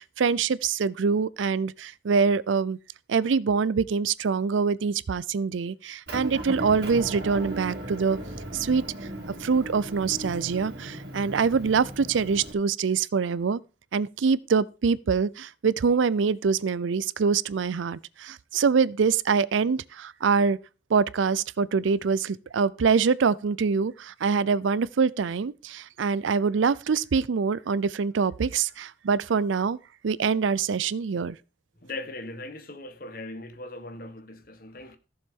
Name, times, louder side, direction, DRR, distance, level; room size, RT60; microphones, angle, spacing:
voice 1, 0.0-2.8 3.1-8.2 8.5-8.8 9.3-13.6 13.9-20.6 20.9-29.8 30.0-31.4, right 5 dB, 85° right, 0.5 m, -25 dB
Motor vehicle (road) / Engine, 6.1-12.5, right 1 dB, 60° right, 2.7 m, -37 dB
voice 2, 31.8-35.0, left 2 dB, 50° left, 1.2 m, -39 dB
14.5 x 7.1 x 3.7 m
head